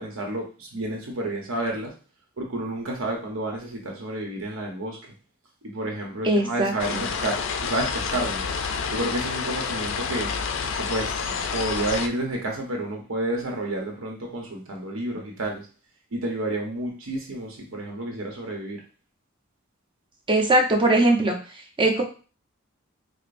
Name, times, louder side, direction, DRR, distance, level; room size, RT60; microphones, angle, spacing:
voice 1, 0.0-1.9 2.4-5.0 5.6-8.4 8.9-10.3 10.8-15.7 16.1-18.8, right 1 dB, 85° right, 1 dB, 0.9 m, -30 dB
voice 2, 6.2-7.0 20.3-21.4 21.8-22.0, right 2 dB, 25° right, 1 dB, 0.7 m, -20 dB
sound 1, 6.8-12.1, left 5 dB, 65° left, 0.4 m, -29 dB
4.9 x 2.0 x 2.5 m, 0.36 s
head